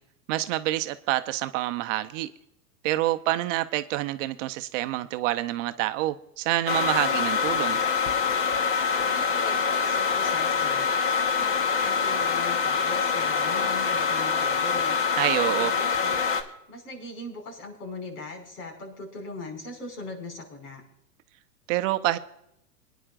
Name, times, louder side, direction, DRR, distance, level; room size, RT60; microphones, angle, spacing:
voice 1, 0.3-2.3 2.8-7.8 15.2-15.7 21.7-22.2, right 16 dB, 50° right, 0.8 m, -27 dB
sound 1, 6.7-16.4, left 6 dB, 25° left, 1.3 m, -25 dB
voice 2, 8.9-10.9 11.3-15.0 15.4-16.2 16.7-20.8, left 2 dB, 70° left, 5.9 m, -40 dB
24.0 x 10.0 x 2.5 m
hypercardioid pair, 110°, 48 cm